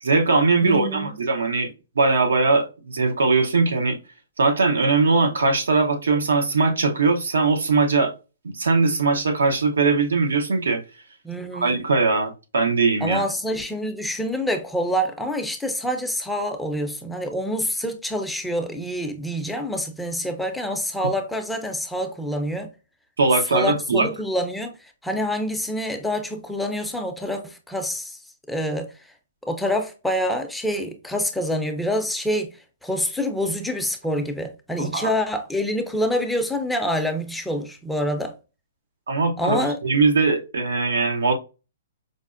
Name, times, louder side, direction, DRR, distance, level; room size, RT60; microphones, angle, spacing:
voice 1, 0.0-4.0 4.4-8.1 8.4-10.8 11.6-13.2 23.2-24.1 34.8-35.1 39.1-41.3, right 3 dB, 85° right, 0.8 m, -20 dB
voice 2, 0.6-1.1 11.2-11.8 13.0-22.7 23.5-28.2 28.5-28.9 29.5-32.5 32.8-38.3 39.4-39.8, equal, 5° left, 0.5 m, -26 dB
4.9 x 2.1 x 2.5 m
hypercardioid pair, 140°, 0 cm